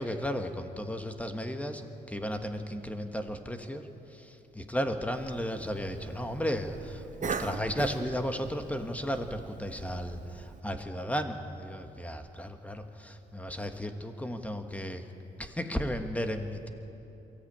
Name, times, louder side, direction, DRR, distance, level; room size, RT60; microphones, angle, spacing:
voice 1, 0.0-3.8 4.1-15.0 15.4-16.7, equal, 5° left, 6 dB, 1.5 m, -34 dB
Cough, 5.1-10.6, right 5 dB, 40° right, 1.1 m, -41 dB
23.0 x 14.0 x 8.9 m, 3.0 s
cardioid pair, 90°, 20 cm